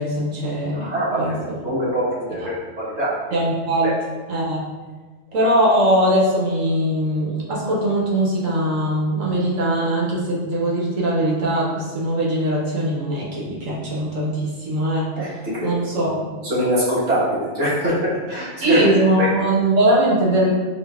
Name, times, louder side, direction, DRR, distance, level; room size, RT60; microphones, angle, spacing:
voice 1, 0.0-1.6 3.3-3.9 4.3-4.6 5.3-15.1 15.6-16.3 18.6-20.5, right 1 dB, 80° right, -5 dB, 1.3 m, -21 dB
voice 2, 0.7-3.2 3.8-3.9 15.2-16.2 16.4-18.9 19.2-19.3, equal, 60° right, -9 dB, 1.5 m, -23 dB
4.3 x 2.7 x 2.3 m, 1.4 s
omnidirectional pair, 1.3 m